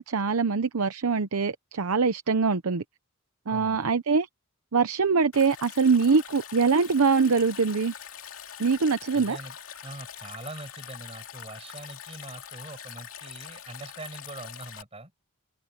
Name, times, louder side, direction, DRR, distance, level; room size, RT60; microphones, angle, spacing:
voice 1, 0.0-2.8 3.5-4.3 4.7-7.9 8.6-9.4, right 5 dB, 80° right, 0.7 m, -23 dB
voice 2, 3.5-3.9 9.1-9.6 9.8-15.1, right 2 dB, 25° right, 6.0 m, -42 dB
Stream, 5.3-14.8, left 9 dB, 70° left, 2.5 m, -43 dB
open air
head